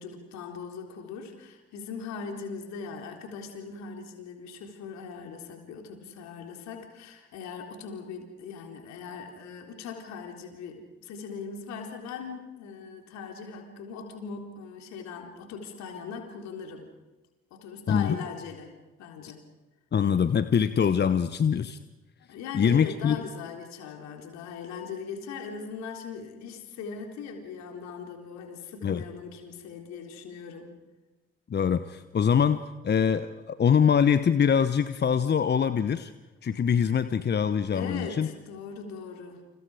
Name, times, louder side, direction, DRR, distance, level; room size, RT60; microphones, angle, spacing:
voice 1, 0.0-16.9 17.5-18.7 19.0-19.4 22.3-30.7 37.7-39.4, left 5 dB, 65° left, 3 dB, 3.9 m, -40 dB
voice 2, 17.9-18.2 19.9-21.8 22.5-23.2 28.8-29.0 31.5-36.1 36.4-38.3, left 7 dB, 35° left, 13 dB, 1.0 m, -24 dB
29.0 x 28.5 x 5.0 m, 1.2 s
figure-of-eight pair, 45°, 29 cm